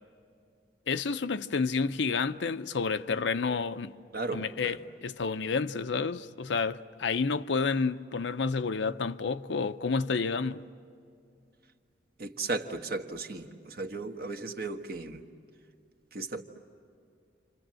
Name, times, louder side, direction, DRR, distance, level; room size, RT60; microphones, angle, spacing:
voice 1, 0.9-4.0 4.3-10.6, left 4 dB, 90° left, 0.6 m, -30 dB
voice 2, 4.1-4.8 12.2-15.2 16.1-16.4, right 3 dB, 60° right, 1.4 m, -35 dB
29.5 x 26.0 x 7.6 m
head